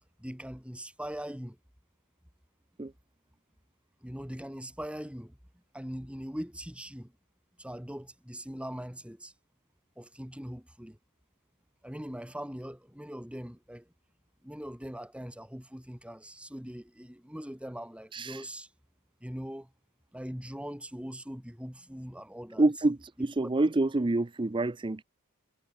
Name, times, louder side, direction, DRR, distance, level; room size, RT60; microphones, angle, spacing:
voice 1, 0.2-1.6 4.0-5.4 5.7-7.1 7.6-9.3 10.0-11.0 11.8-13.9 14.4-18.7 19.2-19.7 20.1-22.6 23.4-23.5, equal, 5° right, 3.8 m, -41 dB
voice 2, 18.1-18.5 22.6-25.0, right 2 dB, 20° right, 0.5 m, -27 dB
head